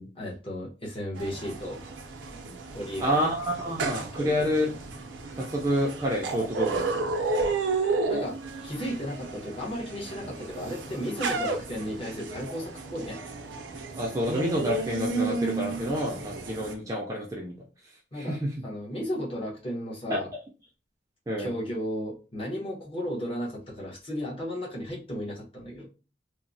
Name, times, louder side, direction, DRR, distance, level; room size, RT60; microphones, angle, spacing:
voice 1, 0.1-1.8 2.7-3.3 4.2-4.5 8.1-8.4 8.6-13.2 18.1-20.3 21.4-25.9, equal, 30° left, -4 dB, 0.9 m, -34 dB
sound 1, 1.2-16.7, right 3 dB, 85° right, 0.5 m, -33 dB
voice 2, 3.0-4.7 5.4-7.1 14.0-17.5 18.2-18.5 20.1-20.2 21.3-21.5, equal, 20° right, -2 dB, 0.4 m, -28 dB
3.0 x 2.0 x 2.6 m, 0.34 s
head